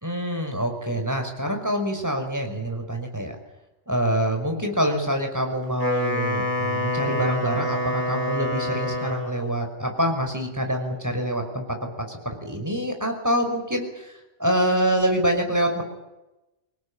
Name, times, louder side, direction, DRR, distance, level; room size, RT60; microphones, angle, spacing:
voice 1, 0.0-3.3 3.9-14.1 14.4-15.8, equal, 15° right, 4 dB, 5.7 m, -26 dB
Wind instrument woodwind instrument, 5.6-9.5, left 1 dB, 40° left, 7.1 m, -27 dB
25.5 x 19.5 x 8.9 m, 0.98 s
omnidirectional pair, 1.3 m